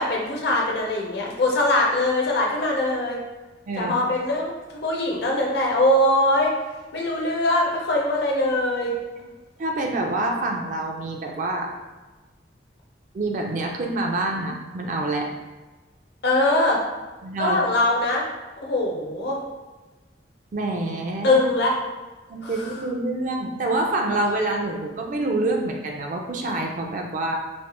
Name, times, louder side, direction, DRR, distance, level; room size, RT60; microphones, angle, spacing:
voice 1, 0.0-3.2 3.8-4.5 4.8-6.5 6.9-8.9 16.2-16.8 17.4-18.3 18.6-19.4 21.2-21.8 22.4-22.7, left 1 dB, 65° left, -2 dB, 0.6 m, -22 dB
voice 2, 9.6-11.7 13.1-15.3 17.2-17.6 20.5-21.4 22.3-27.4, right 2 dB, 45° right, 2 dB, 0.4 m, -26 dB
3.1 x 2.0 x 2.9 m, 1.2 s
head